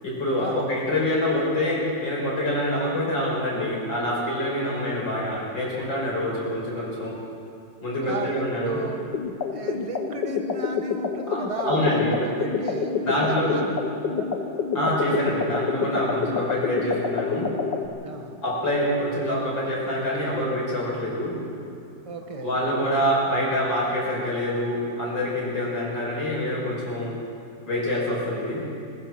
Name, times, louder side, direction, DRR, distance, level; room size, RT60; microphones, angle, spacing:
voice 1, 0.0-7.2 7.8-8.8 11.3-12.1 13.0-13.6 14.7-17.5 18.4-21.4 22.4-27.1 27.6-28.6, left 1 dB, 90° left, -4 dB, 6.5 m, -26 dB
voice 2, 8.0-9.0 9.5-13.7 14.2-14.3 18.0-18.4 22.0-22.5, right 3 dB, 20° right, 4 dB, 1.5 m, -34 dB
sound 1, 9.1-17.9, left 5 dB, 70° left, 1.9 m, -27 dB
21.0 x 20.5 x 6.1 m, 2.7 s
omnidirectional pair, 2.0 m